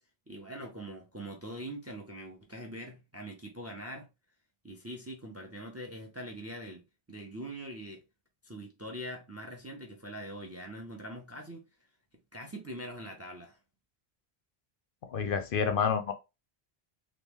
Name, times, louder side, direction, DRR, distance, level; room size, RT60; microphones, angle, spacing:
voice 1, 0.3-4.1 4.6-6.8 7.1-8.0 8.4-11.6 12.3-13.6, right 1 dB, 20° right, 0.5 m, -43 dB
voice 2, 15.1-16.1, left 6 dB, 65° left, 0.7 m, -28 dB
3.0 x 2.5 x 3.5 m
omnidirectional pair, 1.1 m